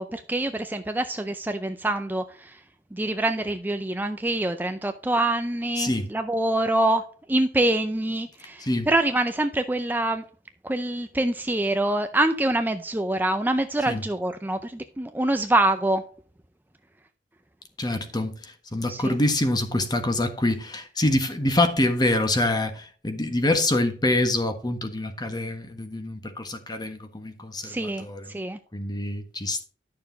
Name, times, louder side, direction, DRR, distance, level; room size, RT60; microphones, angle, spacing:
voice 1, 0.0-2.5 2.9-7.0 7.3-10.2 10.6-16.0 18.9-19.1 27.6-28.6, right 1 dB, 10° right, 0.5 m, -25 dB
voice 2, 5.8-6.1 8.6-8.9 13.9-14.0 17.8-28.3 28.7-29.6, left 1 dB, 25° left, 1.4 m, -26 dB
11.5 x 6.7 x 3.9 m
head